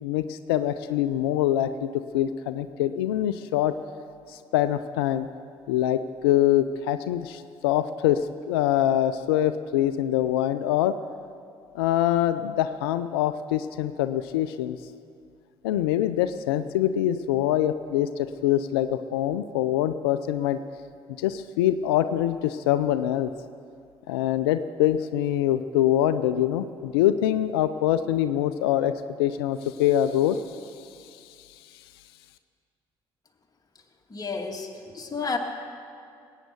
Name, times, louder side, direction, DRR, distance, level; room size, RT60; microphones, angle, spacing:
voice 1, 0.0-3.7 4.3-5.3 5.7-10.9 11.7-14.8 15.6-20.6 21.1-23.3 24.1-28.9 29.2-31.9, left 12 dB, 90° left, 11 dB, 0.5 m, -24 dB
voice 2, 34.1-35.4, left 4 dB, 30° left, 1 dB, 2.2 m, -31 dB
20.5 x 9.1 x 7.0 m, 2.3 s
hypercardioid pair, 55°, 12 cm